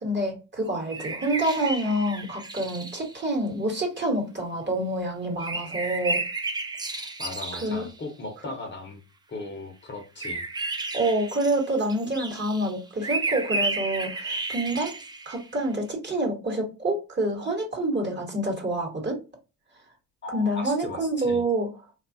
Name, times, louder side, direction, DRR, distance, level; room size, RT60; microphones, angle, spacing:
voice 1, 0.0-6.2 7.5-7.9 10.9-14.9 15.3-19.2 20.3-21.7, right 1 dB, 30° right, 2 dB, 1.1 m, -27 dB
sound 1, 0.9-3.2 5.4-7.9 10.0-15.6, right 3 dB, 10° right, 0.3 m, -32 dB
voice 2, 7.2-9.0 9.3-10.4 20.2-21.4, left 2 dB, 30° left, 3 dB, 0.7 m, -38 dB
3.2 x 2.3 x 2.6 m, 0.30 s
cardioid pair, 95°, 38 cm